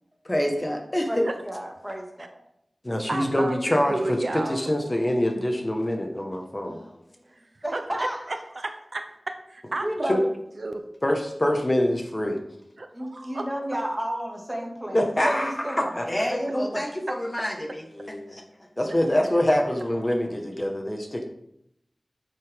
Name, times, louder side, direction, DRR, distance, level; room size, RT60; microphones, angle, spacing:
voice 1, 0.2-1.3 2.8-6.8 10.1-10.2 11.0-12.4 14.9-15.5 15.8-18.4 18.8-21.3, left 1 dB, 25° left, 3 dB, 1.6 m, -25 dB
voice 2, 1.1-2.4 7.6-8.2 9.8-10.2 12.9-16.8 19.0-19.1, equal, 10° right, 0 dB, 2.4 m, -32 dB
voice 3, 3.1-4.7 7.3-7.4 7.7-10.1 10.6-10.8 12.8-13.5, right 2 dB, 65° right, 6 dB, 0.8 m, -32 dB
9.3 x 9.0 x 3.8 m, 0.75 s
wide cardioid pair, 60°, 0 cm